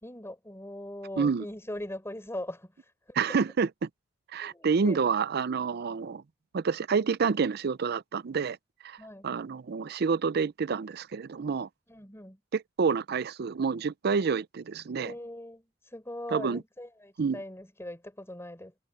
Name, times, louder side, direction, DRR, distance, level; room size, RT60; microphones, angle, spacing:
voice 1, 0.0-2.9 4.4-5.0 5.7-5.9 9.0-9.3 11.9-12.4 14.9-18.7, left 1 dB, 15° left, 4.2 m, -41 dB
voice 2, 3.2-3.9 4.3-6.2 6.5-8.6 8.8-9.0 9.2-11.7 12.5-15.1 16.3-16.6 17.2-17.4, right 5 dB, 55° right, 0.5 m, -28 dB
head